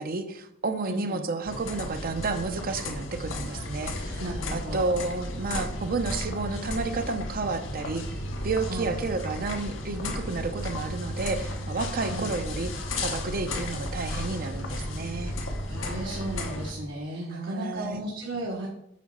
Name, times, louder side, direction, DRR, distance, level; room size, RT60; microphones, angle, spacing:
voice 1, 0.0-4.2 4.5-8.0 8.4-15.4 17.3-18.0, right 3 dB, 50° right, 8 dB, 0.7 m, -31 dB
voice 2, 0.8-1.2 4.2-5.1 5.6-5.7 8.6-9.0 12.0-12.4 15.6-18.7, right 1 dB, 70° right, -2 dB, 1.2 m, -35 dB
sound 1, 1.4-16.7, left 1 dB, 80° left, 1.0 m, -34 dB
8.5 x 3.9 x 5.4 m, 0.80 s
head